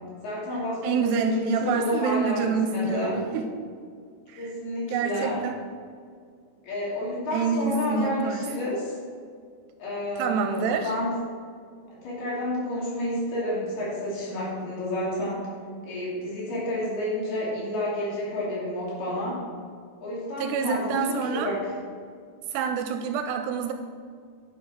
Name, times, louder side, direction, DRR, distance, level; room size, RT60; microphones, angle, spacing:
voice 1, 0.2-3.2 4.4-5.4 6.6-8.9 9.8-11.1 11.9-15.5 15.8-19.4 20.0-21.7, left 1 dB, 65° left, -6 dB, 4.6 m, -30 dB
voice 2, 0.8-3.5 4.3-4.5 4.9-5.6 7.3-8.4 10.2-10.9 20.4-21.5 22.5-23.7, right 5 dB, 85° right, 6 dB, 2.6 m, -27 dB
9.6 x 6.9 x 5.9 m, 2.1 s
omnidirectional pair, 5.1 m